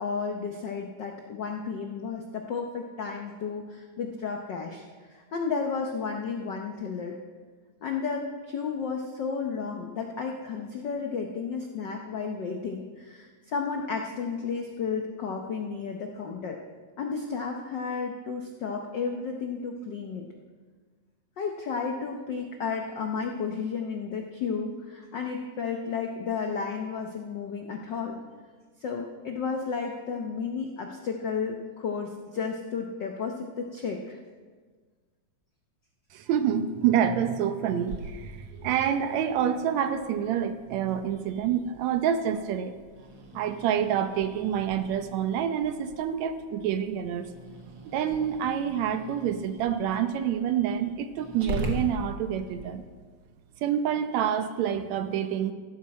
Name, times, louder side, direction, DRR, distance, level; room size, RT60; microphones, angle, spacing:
voice 1, 0.0-7.2 7.8-16.6 17.0-20.2 21.4-28.2 28.8-34.2, left 5 dB, 85° left, 2 dB, 0.9 m, -32 dB
voice 2, 36.1-42.7 43.4-47.3 47.9-52.8 53.6-55.5, right 9 dB, 75° right, 8 dB, 2.0 m, -27 dB
Growling, 37.9-52.7, right 1 dB, 45° right, 1.9 m, -42 dB
15.5 x 12.5 x 4.2 m, 1.5 s
omnidirectional pair, 3.3 m